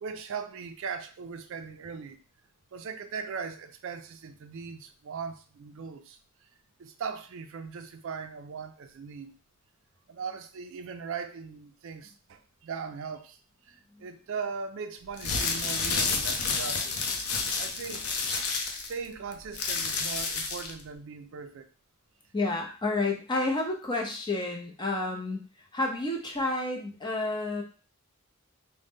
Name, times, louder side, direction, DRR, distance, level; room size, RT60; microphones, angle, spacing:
voice 1, 0.0-2.2 2.7-6.2 6.8-9.4 10.1-13.4 13.7-16.9 17.6-18.1 18.7-21.7, right 5 dB, 60° right, 8 dB, 0.4 m, -39 dB
sound 1, 15.1-20.8, left 4 dB, 90° left, 0.6 m, -30 dB
voice 2, 22.3-27.6, left 2 dB, 20° left, 1 dB, 0.6 m, -30 dB
3.8 x 2.1 x 3.5 m, 0.38 s
head